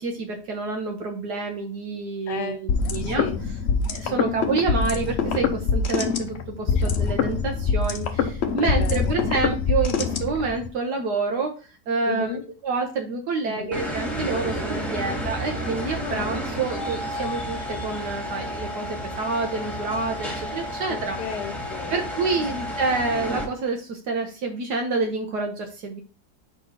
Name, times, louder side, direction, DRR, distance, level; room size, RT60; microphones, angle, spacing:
voice 1, 0.0-3.3 3.9-21.2 21.9-26.0, right 3 dB, 75° right, 1.5 m, -28 dB
voice 2, 2.3-2.7 3.0-3.4 4.1-4.4 6.7-6.9 8.6-9.2 12.1-12.4 13.5-13.8 16.0-16.4 20.9-22.1 22.4-22.5, left 8 dB, 75° left, 1.3 m, -34 dB
sound 1, 2.7-10.7, left 5 dB, 50° left, 0.8 m, -24 dB
sound 2, 13.7-23.4, equal, ahead, 2.0 m, -31 dB
4.8 x 4.3 x 5.6 m
omnidirectional pair, 1.8 m